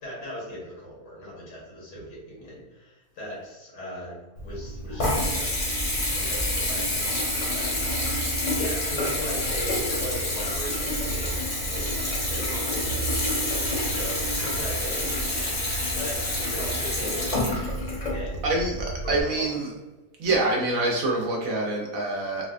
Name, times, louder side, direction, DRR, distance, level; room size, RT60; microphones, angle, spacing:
voice 1, 0.0-5.6 6.2-7.1 7.5-8.1 8.5-17.8 18.1-18.5 19.0-19.5, equal, 85° left, -5 dB, 1.8 m, -38 dB
Water tap faucet / Bathtub (filling or washing) / Trickle dribble, 4.4-19.2, left 1 dB, 35° left, 0.8 m, -28 dB
sound 1, 4.6-14.7, right 2 dB, 60° left, 0.9 m, -42 dB
voice 2, 18.4-19.7 20.2-22.5, right 2 dB, 65° right, -1 dB, 0.9 m, -26 dB
3.9 x 2.2 x 2.4 m, 1.2 s
omnidirectional pair, 1.7 m